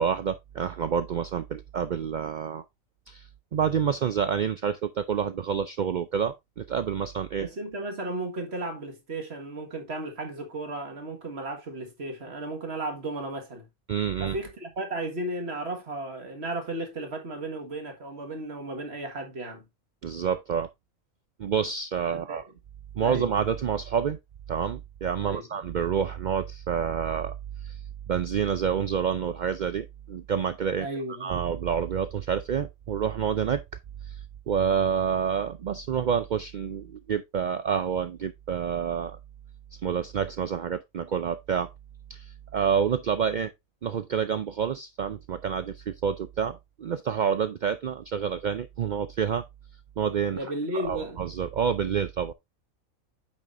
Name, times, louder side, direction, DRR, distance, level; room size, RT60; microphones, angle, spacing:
voice 1, 0.0-2.6 3.1-7.5 13.9-14.4 20.0-20.7 21.4-22.4 23.0-24.2 24.5-27.4 27.6-27.8 28.1-30.9 31.2-33.6 34.1-34.2 34.5-39.2 39.8-41.7 42.1-43.5 43.8-49.4 50.0-50.4 50.7-52.3, right 7 dB, 80° right, 0.4 m, -28 dB
voice 2, 7.4-13.7 14.2-19.7 22.1-22.4 23.0-23.3 25.2-25.5 30.8-31.4 50.3-51.2, right 2 dB, 50° right, 1.9 m, -34 dB
8.8 x 6.4 x 2.5 m
omnidirectional pair, 1.4 m